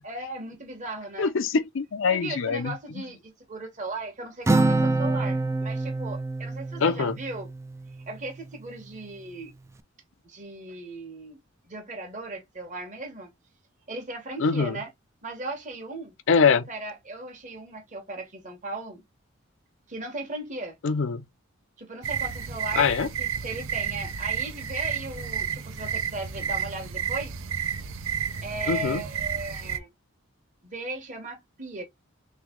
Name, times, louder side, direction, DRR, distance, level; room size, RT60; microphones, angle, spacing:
voice 1, 0.0-1.3 2.0-7.5 8.1-9.5 10.2-11.4 11.6-13.3 13.9-14.9 15.2-16.1 16.5-19.0 19.9-20.8 21.8-22.9 23.2-27.3 28.4-29.9 30.6-31.8, right 2 dB, 40° right, 1.2 m, -37 dB
voice 2, 1.2-2.7 6.8-7.2 14.4-14.8 16.3-16.7 20.8-21.2 22.8-23.1 28.7-29.0, left 5 dB, 65° left, 0.5 m, -23 dB
Acoustic guitar, 4.5-8.1, right 2 dB, 15° right, 0.3 m, -26 dB
sound 1, 22.0-29.8, right 7 dB, 70° right, 0.6 m, -31 dB
3.4 x 3.1 x 3.7 m
head